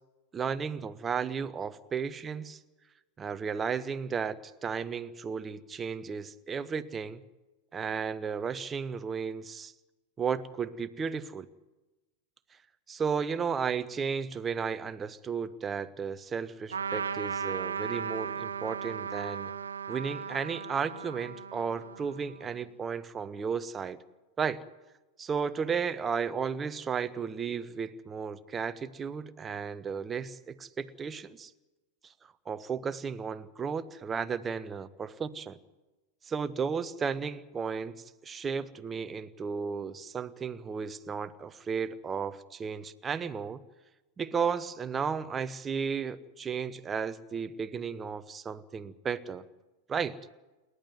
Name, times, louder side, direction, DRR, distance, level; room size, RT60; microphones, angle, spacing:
voice 1, 0.3-2.6 3.2-7.2 7.7-9.7 10.2-11.5 12.9-19.5 19.9-24.0 24.4-24.6 25.2-31.5 32.0-32.1 32.5-35.6 36.2-43.6 44.2-49.4 49.9-50.2, right 6 dB, 20° right, 12 dB, 1.0 m, -34 dB
Trumpet, 16.7-22.6, right 6 dB, 70° right, 1.1 m, -36 dB
28.5 x 11.5 x 9.5 m, 1.1 s
figure-of-eight pair, 90°, 0 cm